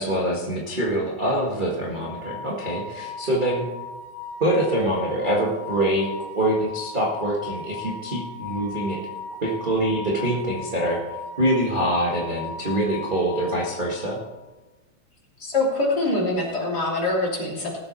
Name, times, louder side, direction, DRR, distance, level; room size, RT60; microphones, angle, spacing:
voice 1, 0.0-3.6 4.4-9.0 9.4-14.2, right 1 dB, 25° right, -4 dB, 1.2 m, -25 dB
sound 1, 2.0-14.2, left 4 dB, 90° left, 2.4 m, -37 dB
voice 2, 15.4-17.8, left 2 dB, 30° left, -4 dB, 3.3 m, -24 dB
19.0 x 8.0 x 4.3 m, 1.2 s
omnidirectional pair, 3.6 m